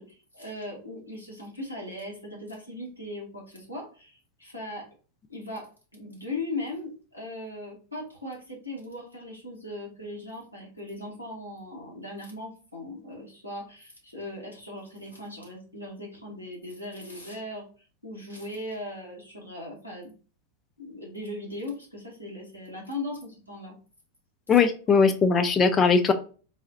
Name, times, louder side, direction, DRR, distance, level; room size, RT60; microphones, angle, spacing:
voice 1, 0.0-4.9 5.3-17.7 18.0-20.1 20.8-23.7, left 1 dB, 90° right, -3 dB, 1.3 m, -38 dB
voice 2, 24.5-26.1, left 5 dB, 20° left, 7 dB, 0.4 m, -20 dB
4.0 x 2.4 x 2.6 m, 0.37 s
figure-of-eight pair, 90°, 0 cm